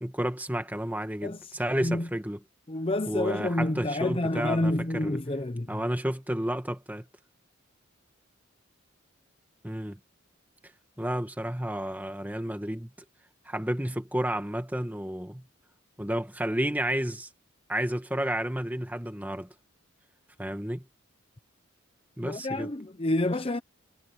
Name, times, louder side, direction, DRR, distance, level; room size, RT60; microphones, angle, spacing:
voice 1, 0.0-2.4 3.1-5.2 5.7-7.0 9.6-10.0 11.0-12.9 13.4-15.4 16.0-17.3 17.7-19.5 20.4-20.8 22.2-22.7, right 1 dB, 10° right, 1.6 m, -31 dB
voice 2, 2.7-5.8 22.2-23.6, left 1 dB, 25° left, 0.7 m, -28 dB
head